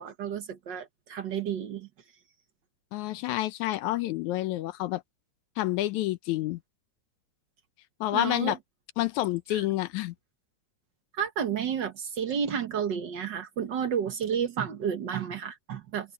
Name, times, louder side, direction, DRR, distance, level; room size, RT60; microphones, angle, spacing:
voice 1, 0.0-1.9 8.1-8.6 9.5-9.6 11.2-16.1, right 8 dB, 80° right, 1.0 m, -31 dB
voice 2, 2.9-5.0 5.6-6.6 8.0-8.6 9.0-10.1, left 16 dB, 75° left, 1.8 m, -28 dB
omnidirectional pair, 3.9 m